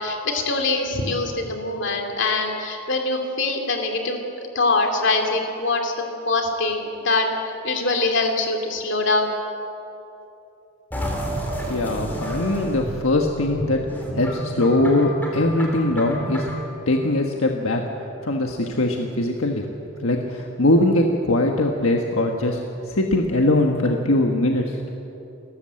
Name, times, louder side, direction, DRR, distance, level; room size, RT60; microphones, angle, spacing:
voice 1, 0.0-9.3, left 3 dB, 60° left, 3 dB, 2.8 m, -23 dB
sound 1, 10.9-16.7, right 1 dB, 10° left, 3.3 m, -30 dB
voice 2, 11.7-16.5 16.9-17.8 18.2-19.7 20.0-24.9, left 1 dB, 80° left, 2 dB, 1.4 m, -21 dB
29.5 x 13.5 x 7.7 m, 2.9 s
head